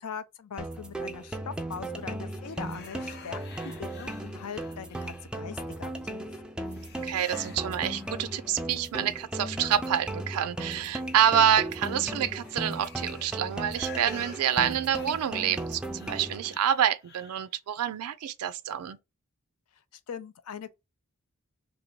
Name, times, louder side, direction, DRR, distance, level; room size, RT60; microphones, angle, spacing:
voice 1, 0.0-6.4 19.9-20.7, left 7 dB, 90° left, 0.5 m, -41 dB
sound 1, 0.6-16.6, right 1 dB, 5° right, 0.3 m, -37 dB
sound 2, 2.4-5.6 6.7-8.7 9.1-17.5, left 6 dB, 50° left, 0.7 m, -50 dB
voice 2, 7.0-19.0, right 9 dB, 85° right, 0.4 m, -27 dB
3.0 x 2.7 x 4.4 m
head